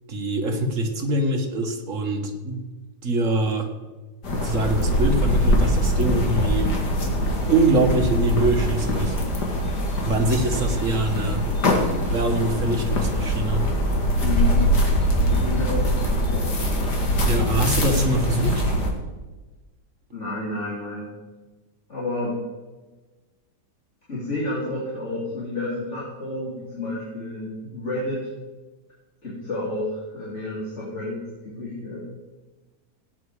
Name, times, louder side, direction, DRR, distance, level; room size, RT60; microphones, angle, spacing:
voice 1, 0.1-2.6 3.0-3.7 4.3-6.8 7.5-9.2 10.1-11.4 12.1-13.7 17.2-18.9, right 2 dB, 50° right, 3 dB, 1.8 m, -24 dB
sound 1, 4.2-18.9, equal, 70° left, 2.6 m, -22 dB
voice 2, 14.2-14.8 15.2-16.5 20.1-21.1 21.9-22.4 24.1-28.3 29.2-32.0, left 2 dB, 40° left, -7 dB, 3.5 m, -30 dB
17.5 x 9.2 x 4.9 m, 1.2 s
omnidirectional pair, 1.9 m